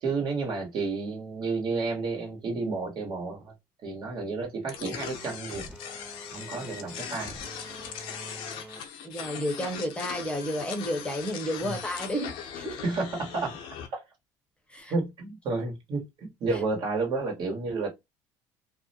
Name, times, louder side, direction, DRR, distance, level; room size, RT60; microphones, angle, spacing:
voice 1, 0.0-3.5 3.8-5.7 6.3-7.3 11.6-11.7 12.8-14.0 14.9-17.9, right 3 dB, 55° right, 1.2 m, -31 dB
sound 1, 4.7-13.9, left 8 dB, 70° left, 0.6 m, -40 dB
sound 2, 5.0-8.8, right 1 dB, 15° right, 0.9 m, -46 dB
voice 2, 9.0-12.8 14.7-14.9, equal, 10° left, 0.7 m, -32 dB
2.4 x 2.1 x 2.7 m
supercardioid pair, 90°, 9 cm